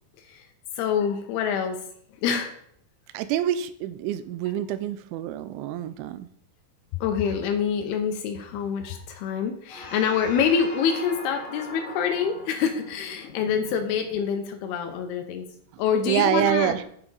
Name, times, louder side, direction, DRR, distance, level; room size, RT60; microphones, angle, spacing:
voice 1, 0.8-1.8 2.2-2.5 7.0-15.5 15.8-16.7, left 7 dB, 90° left, 5 dB, 2.2 m, -26 dB
voice 2, 3.1-6.3 15.7-16.8, right 11 dB, 85° right, 12 dB, 2.8 m, -26 dB
sound 1, 9.7-14.5, left 2 dB, 55° left, 1.9 m, -41 dB
8.6 x 8.1 x 4.0 m, 0.66 s
omnidirectional pair, 5.6 m